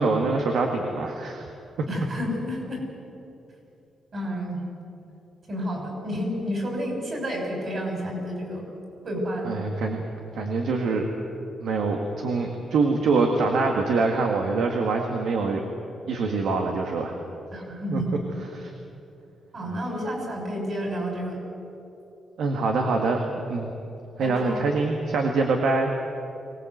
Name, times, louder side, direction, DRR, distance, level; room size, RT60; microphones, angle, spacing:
voice 1, 0.0-1.5 1.8-1.9 9.5-10.0 10.4-11.1 11.6-15.7 16.1-17.1 17.9-18.0 18.5-18.7 22.4-23.2 23.5-23.7 24.2-25.9, right 3 dB, 80° right, 2 dB, 2.0 m, -24 dB
voice 2, 1.8-2.9 4.1-4.6 5.5-8.7 9.0-9.6 17.5-18.1 19.5-21.4 24.2-24.7, equal, 40° right, 1 dB, 6.4 m, -30 dB
23.5 x 19.0 x 8.1 m, 2.8 s
wide cardioid pair, 150°, 0 cm